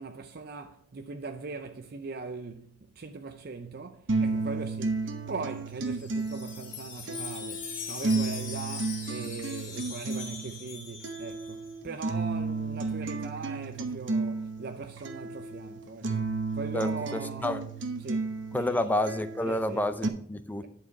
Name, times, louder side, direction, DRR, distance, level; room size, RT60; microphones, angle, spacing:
voice 1, 0.0-17.6 18.0-18.8 19.4-19.8, right 4 dB, 50° right, 0.6 m, -40 dB
sound 1, 4.1-20.1, right 3 dB, 75° right, 1.0 m, -33 dB
Wind chime, 5.6-11.8, left 6 dB, 75° left, 2.9 m, -41 dB
voice 2, 16.7-17.6 18.5-20.6, left 1 dB, 10° left, 0.5 m, -29 dB
11.0 x 4.8 x 5.8 m
head